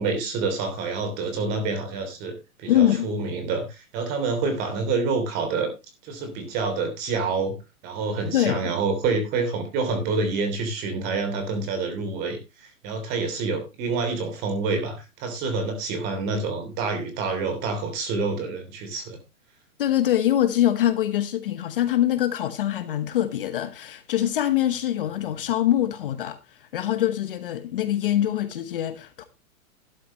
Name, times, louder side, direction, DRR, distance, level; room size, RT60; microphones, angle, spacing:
voice 1, 0.0-5.7 6.0-7.5 7.8-19.2, right 4 dB, 20° right, 3.1 m, -27 dB
voice 2, 2.7-3.1 8.3-8.6 19.8-29.2, left 12 dB, 40° left, 1.1 m, -24 dB
12.5 x 11.5 x 3.0 m
hypercardioid pair, 170°, 43 cm